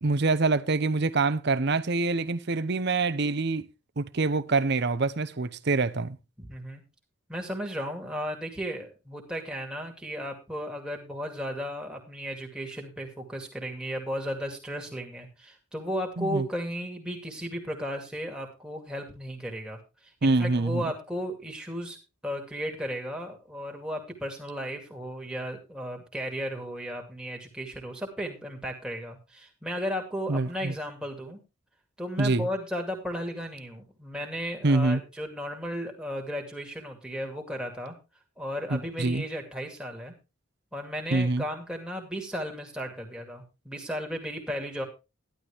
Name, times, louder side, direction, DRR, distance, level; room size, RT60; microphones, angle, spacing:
voice 1, 0.0-3.7 4.0-6.2 16.2-16.5 20.2-20.9 30.3-30.7 32.2-32.5 34.6-35.0 38.7-39.2 41.1-41.4, right 3 dB, 55° right, 0.8 m, -25 dB
voice 2, 6.4-6.8 7.3-22.0 22.2-31.4 32.0-38.0 38.4-40.1 40.7-44.8, equal, 5° right, 2.4 m, -35 dB
11.5 x 11.5 x 3.5 m
head